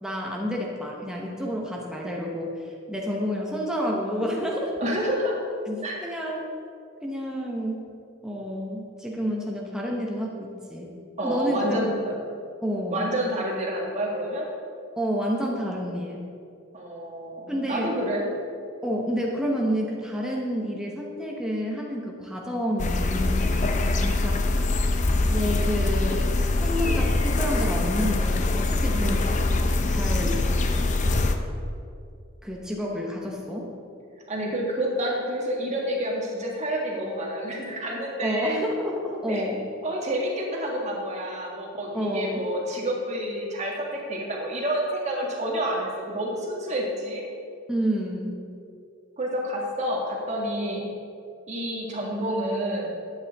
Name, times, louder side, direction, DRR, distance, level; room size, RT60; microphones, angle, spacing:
voice 1, 0.0-4.7 5.7-6.5 7.0-7.9 8.2-10.9 11.2-11.8 12.6-13.0 15.0-16.2 17.5-18.0 18.8-23.4 24.2-24.4 25.3-26.2 26.6-29.4 29.9-30.5 32.4-33.7 38.2-39.6 41.9-42.4 47.7-48.4 50.6-50.8, equal, 5° right, -2 dB, 0.9 m, -29 dB
voice 2, 4.8-5.4 5.8-6.0 11.2-12.1 12.9-14.5 16.7-18.3 23.8-24.2 28.9-29.2 34.3-38.6 39.3-39.5 39.8-47.2 49.2-50.9 51.5-52.9, right 1 dB, 35° right, -2 dB, 1.8 m, -29 dB
sound 1, 22.8-31.4, left 2 dB, 35° left, 0.6 m, -23 dB
12.0 x 9.0 x 3.5 m, 2.5 s
head